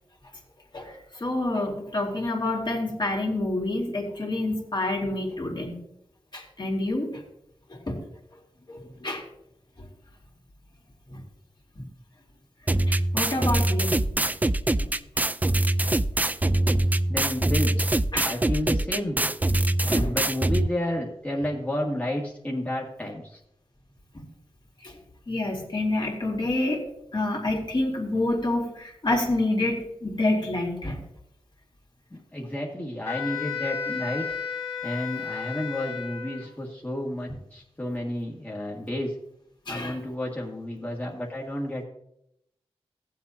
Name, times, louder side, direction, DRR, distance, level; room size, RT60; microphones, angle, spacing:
voice 1, 0.7-5.8 6.3-7.2 7.7-8.0 8.7-9.2 9.8-9.9 11.1-11.2 11.8-11.9 12.9-14.1 14.8-14.9 18.1-18.3 19.9-20.1 24.1-24.2 24.8-25.0 25.3-26.8 27.1-31.0 39.7-40.0, left 2 dB, 45° left, -1 dB, 2.8 m, -28 dB
sound 1, 12.7-20.7, right 1 dB, 15° right, 0.4 m, -23 dB
voice 2, 17.1-17.9 18.2-19.3 19.8-23.4 32.1-34.2 34.8-39.1 39.7-41.8, left 1 dB, 15° left, -3 dB, 1.8 m, -31 dB
Wind instrument woodwind instrument, 33.0-36.5, left 6 dB, 70° left, 2.6 m, -33 dB
16.5 x 7.5 x 2.8 m, 0.78 s
cardioid pair, 65°, 11 cm